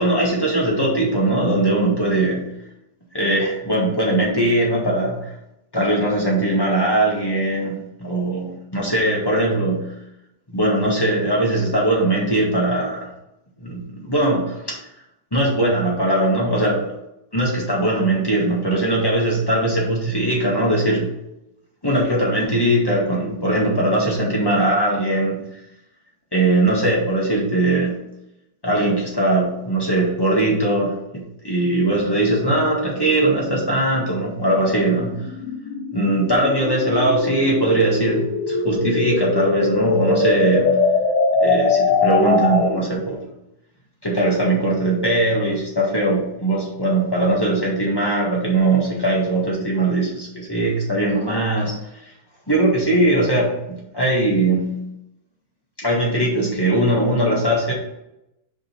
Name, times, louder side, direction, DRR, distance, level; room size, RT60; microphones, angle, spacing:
voice 1, 0.0-2.4 3.1-5.2 5.7-9.9 10.5-13.1 13.6-14.8 15.3-16.9 17.3-21.1 21.8-25.4 26.3-27.9 28.6-35.2 35.9-40.9 41.4-43.2 44.0-51.8 52.5-54.8 55.8-57.7, right 1 dB, 15° left, -4 dB, 0.8 m, -20 dB
sound 1, 31.7-43.0, left 3 dB, 60° left, 1.5 m, -22 dB
5.3 x 5.0 x 5.7 m, 0.86 s
omnidirectional pair, 3.3 m